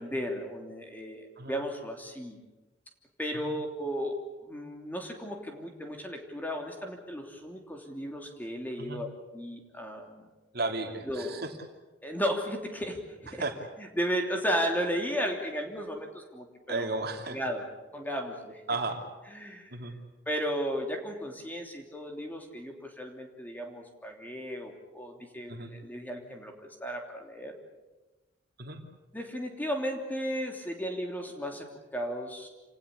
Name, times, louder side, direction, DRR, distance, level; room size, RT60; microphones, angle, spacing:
voice 1, 0.0-2.4 3.2-9.1 9.3-10.1 11.0-11.4 12.0-13.4 13.8-16.9 17.3-17.6 17.9-18.6 19.3-19.7 20.3-26.5 26.8-27.5 29.1-32.5, equal, 10° left, 2 dB, 3.0 m, -34 dB
voice 2, 10.5-11.4 13.4-13.6 16.7-17.4 18.7-19.0 19.7-19.9 25.5-25.7 28.6-28.8, right 3 dB, 55° right, 3 dB, 2.8 m, -33 dB
27.5 x 18.0 x 8.4 m, 1.1 s
head